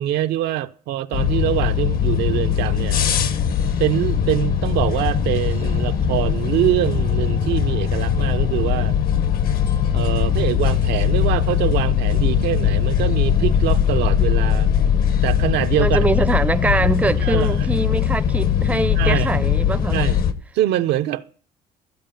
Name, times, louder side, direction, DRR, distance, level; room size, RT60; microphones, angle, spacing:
voice 1, 0.0-3.0 3.8-9.0 9.9-14.7 15.2-16.2 17.2-17.9 19.0-19.3 19.9-20.2 20.5-21.2, right 13 dB, 80° right, 0.6 m, -24 dB
sound 1, 1.1-20.3, left 8 dB, 60° left, 1.2 m, -20 dB
voice 2, 15.8-20.0, right 2 dB, 10° right, 0.5 m, -23 dB
14.5 x 5.0 x 9.0 m
cardioid pair, 110°, 17 cm